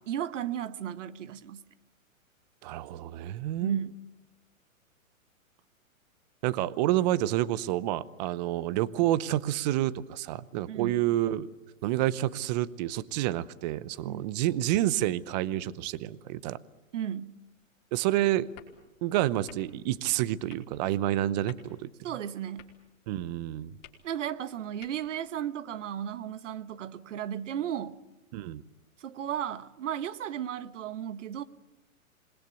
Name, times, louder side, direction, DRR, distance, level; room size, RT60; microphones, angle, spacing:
voice 1, 0.0-1.6 3.6-4.0 10.7-11.0 14.0-14.3 16.9-17.3 22.0-22.7 24.0-28.0 29.0-31.4, right 10 dB, 60° right, 1.4 m, -34 dB
voice 2, 2.6-3.8 6.4-11.5 11.8-16.6 17.9-18.5 19.0-21.9 23.1-23.7 28.3-28.6, right 14 dB, 30° right, 0.8 m, -29 dB
sound 1, 17.3-25.3, left 9 dB, 30° left, 5.0 m, -57 dB
27.0 x 21.0 x 8.0 m
hypercardioid pair, 140°, 41 cm